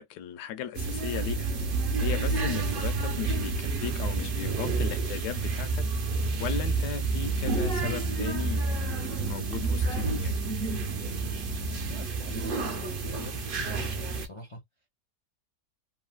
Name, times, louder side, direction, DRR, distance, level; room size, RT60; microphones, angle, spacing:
voice 1, 0.0-1.5 2.0-5.8 6.4-10.4, left 9 dB, 80° left, 1.1 m, -37 dB
sound 1, 0.7-14.3, right 3 dB, 55° right, 0.6 m, -29 dB
sound 2, 7.1-12.1, right 12 dB, 75° right, 1.1 m, -46 dB
voice 2, 11.8-14.6, left 2 dB, 50° left, 0.3 m, -43 dB
3.2 x 2.5 x 2.2 m
omnidirectional pair, 1.8 m